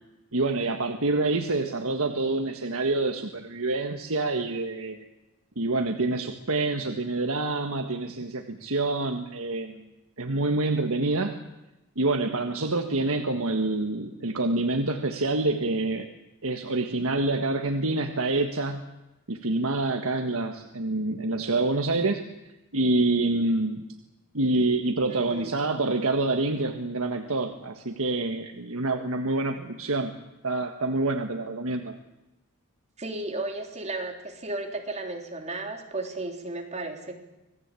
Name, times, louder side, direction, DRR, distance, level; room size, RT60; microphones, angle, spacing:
voice 1, 0.3-5.0 5.6-9.9 10.2-11.4 11.9-16.1 16.4-18.9 19.3-22.3 22.7-23.9 24.3-30.1 30.4-32.0, right 2 dB, 65° right, 5 dB, 1.6 m, -27 dB
voice 2, 25.1-25.5 33.0-37.2, right 2 dB, 30° right, 3 dB, 3.4 m, -34 dB
26.0 x 19.0 x 8.4 m, 0.97 s
head